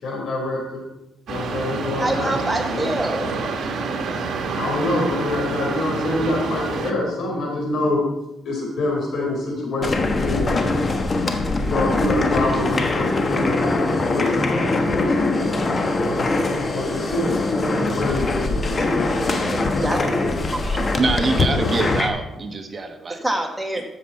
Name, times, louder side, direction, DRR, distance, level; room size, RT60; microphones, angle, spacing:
voice 1, 0.0-0.8 1.3-2.3 2.8-2.9 3.2-3.4 4.5-8.0 8.4-10.8 11.6-13.9 14.1-15.5 16.7-17.4 17.7-19.9, left 2 dB, 70° left, -1 dB, 4.5 m, -26 dB
sound 1, 1.3-6.9, right 4 dB, 65° right, 1.5 m, -27 dB
voice 2, 2.0-3.3 19.4-20.6 23.2-23.8, right 1 dB, 5° right, 1 dB, 1.7 m, -26 dB
sound 2, 9.8-22.1, left 2 dB, 35° left, 1.2 m, -22 dB
voice 3, 20.7-23.2, right 3 dB, 35° right, 5 dB, 1.2 m, -25 dB
13.0 x 7.7 x 4.3 m, 0.92 s
cardioid pair, 115°, 0 cm